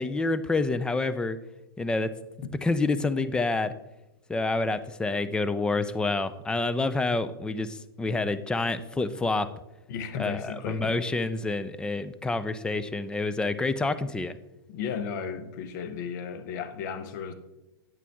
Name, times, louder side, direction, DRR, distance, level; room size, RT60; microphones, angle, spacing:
voice 1, 0.0-1.4 1.8-2.1 2.6-3.7 4.3-9.5 10.2-14.4, left 3 dB, 5° left, 12 dB, 0.4 m, -28 dB
voice 2, 9.9-11.0 14.7-17.3, left 6 dB, 45° left, 10 dB, 1.0 m, -34 dB
9.0 x 8.2 x 3.5 m, 0.96 s
figure-of-eight pair, 110°, 13 cm